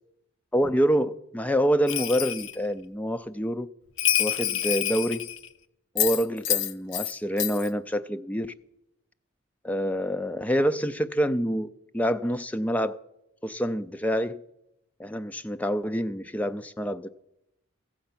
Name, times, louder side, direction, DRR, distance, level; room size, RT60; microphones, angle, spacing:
voice 1, 0.5-3.7 4.2-5.3 5.9-8.5 9.6-11.7 11.9-13.0 13.4-14.4 15.0-17.1, equal, 5° left, 0.3 m, -27 dB
Bell, 1.9-2.6 4.0-5.5 6.0-7.1 7.4-7.7, left 11 dB, 65° left, 0.6 m, -27 dB
14.5 x 7.6 x 5.9 m
head